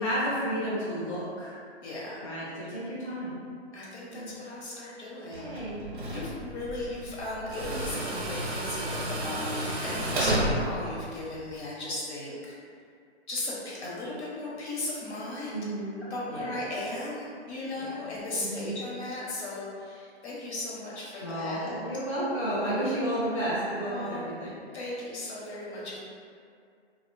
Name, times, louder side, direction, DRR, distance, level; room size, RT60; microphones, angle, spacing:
voice 1, 0.0-1.5 2.2-3.3 4.1-4.3 5.3-5.8 9.4-9.8 15.5-15.9 16.3-16.5 18.4-18.7 21.2-24.5, equal, 30° left, -11 dB, 0.5 m, -32 dB
voice 2, 1.8-2.3 2.6-2.7 3.7-5.6 6.1-12.6 13.3-15.6 16.0-21.8 23.0-23.2 23.8-24.2 24.7-26.0, left 2 dB, 75° left, -6 dB, 0.8 m, -36 dB
Tools, 5.3-11.6, right 1 dB, 50° right, 0.5 m, -32 dB
2.4 x 2.0 x 2.5 m, 2.3 s
hypercardioid pair, 170°, 34 cm